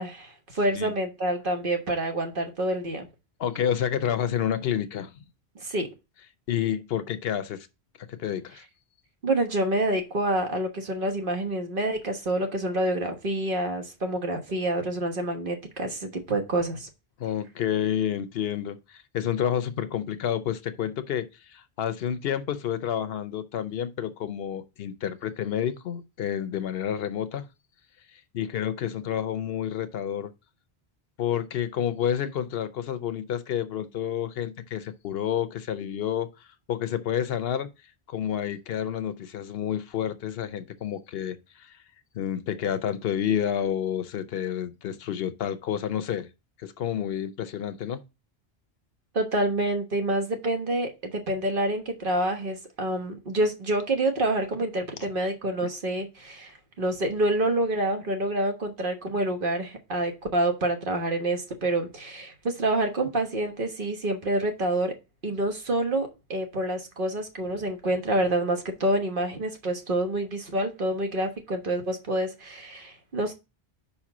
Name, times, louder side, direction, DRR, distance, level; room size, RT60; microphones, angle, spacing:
voice 1, 0.0-3.1 5.6-5.9 9.2-16.9 49.1-64.9 65.2-73.3, right 1 dB, 55° right, 1.4 m, -27 dB
voice 2, 3.4-5.1 6.5-7.7 8.1-8.6 17.2-27.5 28.3-30.3 31.2-36.3 36.7-37.7 38.1-41.8 42.1-46.3 46.6-48.0 55.6-55.7, left 9 dB, 70° left, 0.9 m, -29 dB
5.5 x 4.3 x 5.9 m
omnidirectional pair, 1.1 m